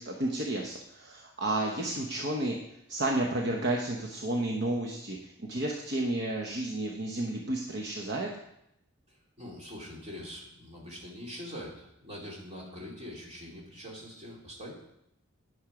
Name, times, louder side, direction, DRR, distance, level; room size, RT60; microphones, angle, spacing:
voice 1, 0.0-8.4, right 1 dB, 50° right, 1 dB, 0.9 m, -32 dB
voice 2, 9.1-14.7, equal, 30° right, -3 dB, 2.6 m, -43 dB
10.5 x 6.5 x 4.9 m, 0.79 s
head